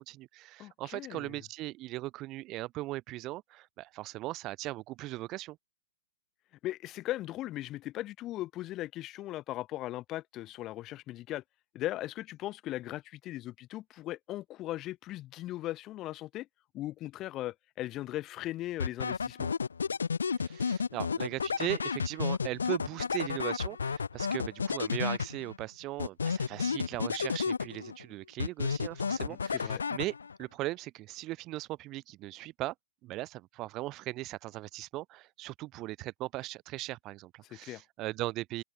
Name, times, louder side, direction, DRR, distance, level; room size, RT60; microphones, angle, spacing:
voice 1, 0.0-5.6 20.4-32.7 33.0-38.6, right 18 dB, 35° right, 1.1 m, -38 dB
voice 2, 0.6-1.4 6.6-11.4 11.7-16.5 16.7-19.5 29.3-29.8 37.4-37.8, left 15 dB, 30° left, 0.5 m, -38 dB
sound 1, 18.8-25.6 26.0-28.0 28.4-30.4, left 5 dB, 85° left, 0.7 m, -32 dB
open air
hypercardioid pair, 120°, 0 cm